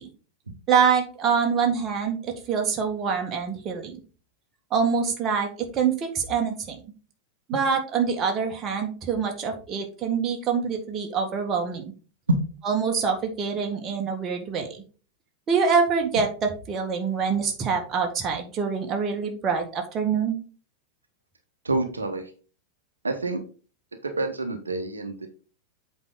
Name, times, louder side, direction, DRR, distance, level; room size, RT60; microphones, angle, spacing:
voice 1, 0.7-4.0 4.7-6.8 7.5-11.8 12.7-14.8 15.5-16.3 16.7-20.4, right 6 dB, 30° right, 3 dB, 1.7 m, -25 dB
voice 2, 21.6-22.3 23.0-23.4 24.0-25.3, right 2 dB, 75° right, 6 dB, 1.0 m, -27 dB
7.9 x 4.7 x 3.9 m, 0.37 s
figure-of-eight pair, 90°, 0 cm